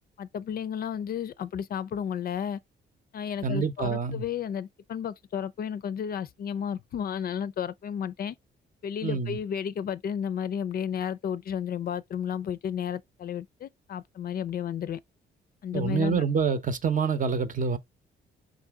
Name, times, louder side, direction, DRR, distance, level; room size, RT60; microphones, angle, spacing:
voice 1, 0.2-2.6 3.1-8.4 8.8-15.0 15.6-16.2, left 8 dB, 50° left, 0.4 m, -32 dB
voice 2, 3.4-4.2 9.0-9.4 15.7-17.8, right 5 dB, 40° right, 0.8 m, -27 dB
4.9 x 2.7 x 3.5 m
cardioid pair, 90°, 20 cm